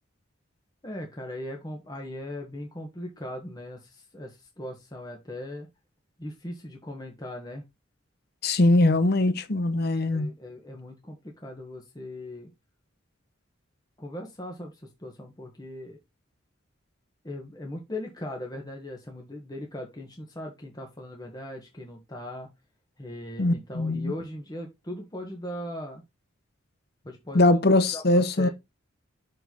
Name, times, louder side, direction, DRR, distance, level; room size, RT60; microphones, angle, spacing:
voice 1, 0.8-5.7 6.2-7.6 10.1-12.5 14.0-16.0 17.2-22.5 23.0-26.0 27.0-27.7 27.9-28.5, left 1 dB, 20° left, 1.4 m, -39 dB
voice 2, 8.4-10.3 23.4-24.1 27.3-28.5, left 2 dB, 55° left, 0.9 m, -21 dB
6.4 x 5.5 x 3.9 m
head